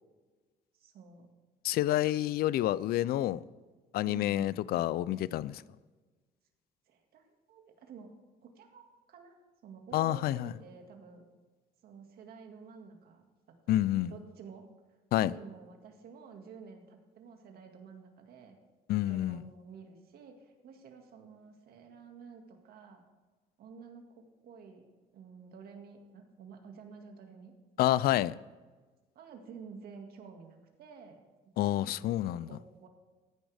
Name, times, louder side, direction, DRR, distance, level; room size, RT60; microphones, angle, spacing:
voice 1, 0.7-1.3 4.0-4.8 6.9-8.1 8.6-9.4 9.6-11.3 11.8-13.2 13.7-14.7 15.2-18.6 19.1-23.0 23.6-24.9 25.1-27.5 27.9-28.0 29.2-31.2 31.7-32.9, right 5 dB, 65° right, 2.0 m, -51 dB
voice 2, 1.6-3.4 3.9-5.6 9.9-10.5 13.7-14.1 15.1-15.3 18.9-19.4 27.8-28.4 31.6-32.5, left 14 dB, 65° left, 0.4 m, -28 dB
14.5 x 10.0 x 3.5 m
cardioid pair, 110°, 17 cm